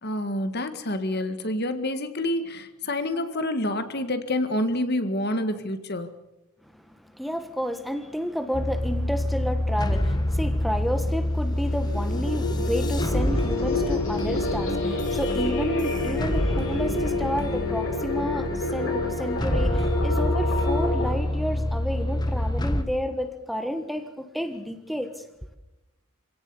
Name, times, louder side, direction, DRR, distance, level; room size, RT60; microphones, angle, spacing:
voice 1, 0.0-6.1, left 1 dB, 45° left, 9 dB, 1.8 m, -28 dB
voice 2, 6.7-25.2, equal, ahead, 7 dB, 1.4 m, -31 dB
sound 1, 8.5-22.8, left 1 dB, 20° left, 1.4 m, -27 dB
sound 2, 11.5-21.1, left 2 dB, 65° left, 6.8 m, -28 dB
27.0 x 17.5 x 7.0 m, 0.97 s
head